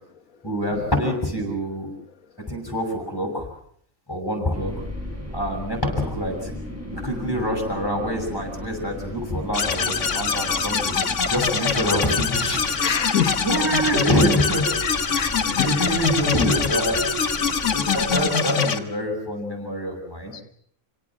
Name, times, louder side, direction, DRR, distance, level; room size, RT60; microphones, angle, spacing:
voice 1, 0.4-1.9 2.5-3.5 4.1-4.8 5.3-6.5 6.9-11.0 11.3-12.6 13.4-14.7 15.0-17.0 17.7-20.3, equal, 15° left, 3 dB, 6.9 m, -26 dB
sound 1, 4.5-18.4, left 1 dB, 10° right, 6.1 m, -36 dB
sound 2, 9.5-18.8, left 5 dB, 65° left, 1.7 m, -24 dB
voice 2, 12.8-13.4 14.8-16.0 16.4-16.5 20.3-20.4, left 9 dB, 85° left, 4 dB, 1.6 m, -26 dB
27.0 x 17.5 x 7.4 m, 0.62 s
omnidirectional pair, 1.4 m